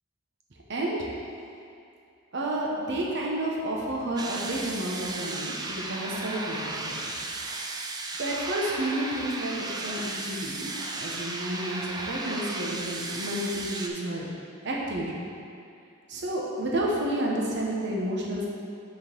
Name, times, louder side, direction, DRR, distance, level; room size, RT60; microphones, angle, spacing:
voice 1, 0.7-1.0 2.3-7.0 8.1-10.7 11.0-14.3 14.6-15.2 16.1-18.5, right 1 dB, 60° right, -3 dB, 1.0 m, -30 dB
sound 1, 4.2-13.9, right 2 dB, 20° right, 0.4 m, -35 dB
6.0 x 3.9 x 5.2 m, 2.5 s
head